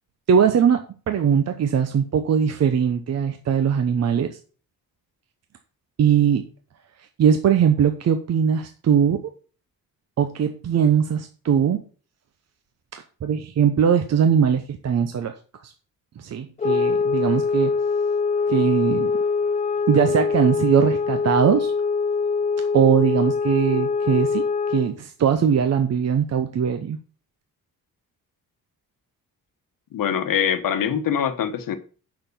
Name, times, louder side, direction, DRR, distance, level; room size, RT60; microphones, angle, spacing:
voice 1, 0.3-4.4 6.0-6.4 7.2-9.3 10.2-11.8 12.9-15.3 15.6-15.7 16.2-17.7 18.5-19.1 19.9-21.7 22.7-27.0, right 7 dB, 50° right, 0.7 m, -20 dB
sound 1, 16.6-25.0, left 5 dB, 20° left, 0.3 m, -23 dB
voice 2, 29.9-31.8, left 8 dB, 70° left, 1.1 m, -23 dB
6.9 x 5.9 x 6.8 m
wide cardioid pair, 180°, 35 cm